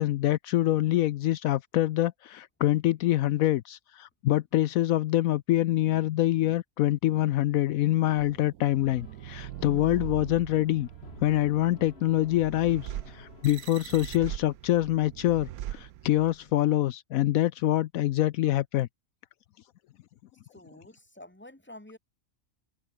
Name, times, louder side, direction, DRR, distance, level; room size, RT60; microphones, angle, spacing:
voice 1, 0.0-10.9 11.2-18.9, left 14 dB, 75° left, 1.0 m, -25 dB
sound 1, 8.2-16.5, right 13 dB, 90° right, 1.2 m, -41 dB
sound 2, 8.6-14.2, left 3 dB, 45° left, 2.8 m, -53 dB
voice 2, 20.5-22.0, left 1 dB, 10° left, 2.5 m, -48 dB
omnidirectional pair, 1.5 m